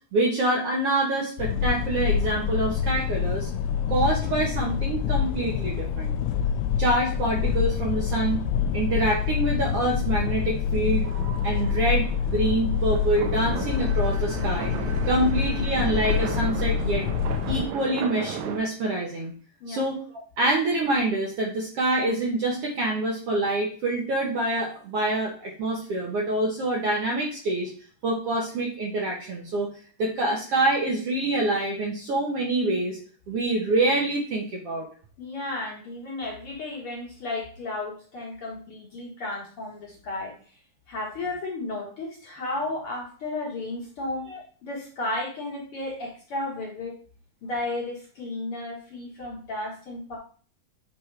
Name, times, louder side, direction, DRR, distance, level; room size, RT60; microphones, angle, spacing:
voice 1, 0.1-3.5 3.9-6.1 6.8-8.4 8.7-11.1 11.4-14.7 15.0-17.1 17.5-19.3 19.7-20.0 20.4-27.7 28.0-29.7 30.0-33.0 33.3-34.9 44.3-44.4, right 2 dB, 65° right, -1 dB, 1.5 m, -26 dB
sound 1, 1.4-17.7, left 7 dB, 80° left, 1.8 m, -26 dB
sound 2, 11.0-18.6, right 7 dB, 85° right, 2.5 m, -36 dB
Bowed string instrument, 13.5-17.7, right 6 dB, 50° right, 1.6 m, -43 dB
voice 2, 35.2-40.3 40.9-44.3 44.6-46.9 47.4-50.2, left 2 dB, 55° left, -3 dB, 1.7 m, -33 dB
8.5 x 4.4 x 3.3 m, 0.43 s
omnidirectional pair, 4.0 m